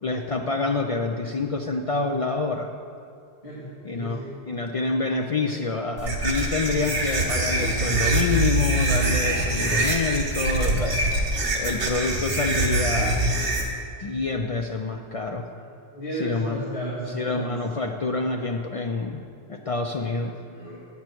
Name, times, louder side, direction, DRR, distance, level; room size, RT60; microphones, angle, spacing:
voice 1, 0.0-2.7 3.8-11.2 11.5-13.2 14.0-15.4 16.1-16.6 17.1-19.2 19.5-20.3, left 3 dB, 60° left, 3 dB, 0.3 m, -27 dB
voice 2, 3.4-4.4 15.9-17.5 20.5-20.8, right 1 dB, 30° left, -9 dB, 2.0 m, -33 dB
sound 1, 6.0-13.6, right 2 dB, 90° right, 1.5 m, -24 dB
9.5 x 8.3 x 4.5 m, 2.3 s
omnidirectional pair, 1.1 m